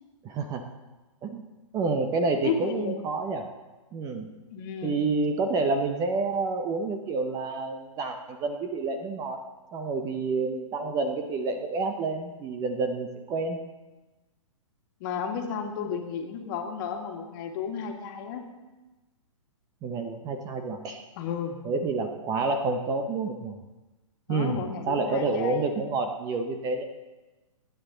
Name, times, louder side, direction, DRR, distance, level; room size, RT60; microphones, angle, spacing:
voice 1, 0.2-0.6 1.2-1.5 1.7-3.5 3.9-4.3 4.8-9.4 9.7-13.6 19.8-21.0 21.6-23.6 24.3-24.6 24.9-26.8, right 3 dB, 20° right, 5 dB, 0.8 m, -29 dB
voice 2, 2.4-3.0 4.5-5.0 15.0-18.5 21.2-21.6 24.3-25.7, left 7 dB, 40° left, 3 dB, 2.0 m, -33 dB
21.0 x 9.3 x 3.9 m, 1.1 s
hypercardioid pair, 140°, 17 cm